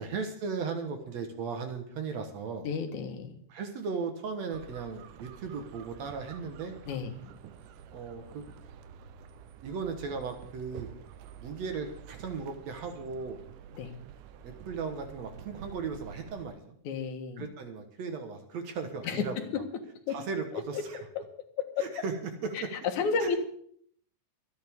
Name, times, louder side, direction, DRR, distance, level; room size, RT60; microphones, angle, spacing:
voice 1, 0.0-2.7 3.5-6.8 7.9-8.4 9.6-10.9 11.4-13.4 14.4-16.8 17.4-19.4 20.1-21.0 21.8-22.1 22.4-22.7 23.2-23.3, right 5 dB, 65° right, 6 dB, 2.4 m, -36 dB
voice 2, 2.6-3.4 6.9-7.3 13.7-14.0 16.8-17.5 19.0-19.6 20.1-20.2 20.5-20.8 21.2-21.3 21.6-21.8 22.5-23.4, left 6 dB, 75° left, 5 dB, 2.8 m, -32 dB
sound 1, 4.5-16.5, right 8 dB, 90° right, 2.3 m, -49 dB
24.5 x 9.6 x 3.6 m, 0.63 s
omnidirectional pair, 3.5 m